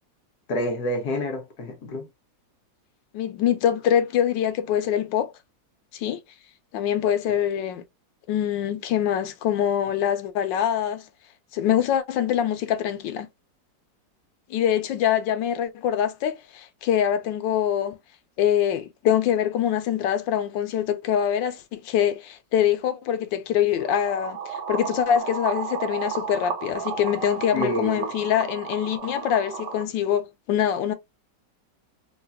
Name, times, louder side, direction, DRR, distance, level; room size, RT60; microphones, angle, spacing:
voice 1, 0.5-2.1 7.3-7.4 27.5-28.1, left 1 dB, 65° left, 1.4 m, -28 dB
voice 2, 3.1-5.3 5.9-6.2 6.7-7.8 8.3-11.0 11.5-13.3 14.5-18.0 18.4-30.9, left 9 dB, 85° left, 1.3 m, -24 dB
sound 1, 23.8-29.8, right 6 dB, 75° right, 1.4 m, -33 dB
3.8 x 2.3 x 2.6 m
omnidirectional pair, 2.0 m